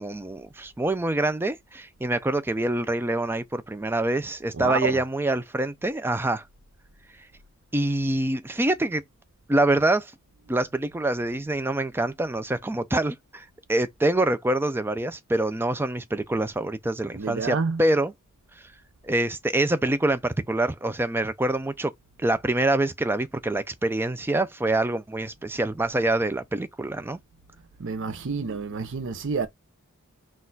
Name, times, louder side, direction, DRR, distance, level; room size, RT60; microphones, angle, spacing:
voice 1, 0.0-6.4 7.7-9.0 9.5-10.1 10.5-18.1 19.0-21.9 22.2-27.2, right 2 dB, 10° right, 0.3 m, -25 dB
voice 2, 4.5-5.0 17.1-17.9 27.8-29.5, right 5 dB, 60° right, 0.6 m, -29 dB
4.1 x 2.4 x 3.8 m
head